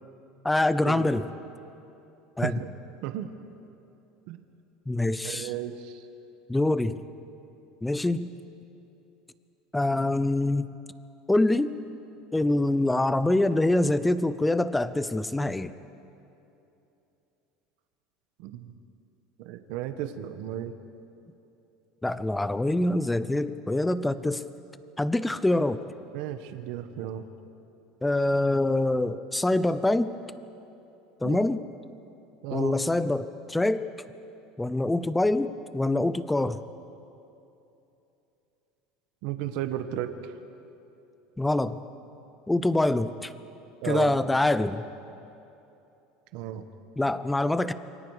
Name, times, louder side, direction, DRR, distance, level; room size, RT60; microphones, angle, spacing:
voice 1, 0.4-1.3 2.4-2.6 4.9-5.5 6.5-7.0 7.8-8.3 9.7-10.7 11.3-11.7 12.3-15.7 22.0-24.4 25.0-25.8 28.0-30.1 31.2-31.6 32.5-33.9 34.6-36.6 41.4-41.8 42.5-43.3 43.8-44.8 47.0-47.7, left 2 dB, 5° left, 14 dB, 0.7 m, -25 dB
voice 2, 5.2-6.0 18.4-18.7 19.4-20.7 26.1-27.2 31.2-31.4 32.4-32.8 39.2-40.1 43.8-44.1 46.3-46.6, right 12 dB, 65° right, 8 dB, 1.3 m, -34 dB
28.0 x 23.5 x 4.9 m, 2.9 s
supercardioid pair, 145°, 0 cm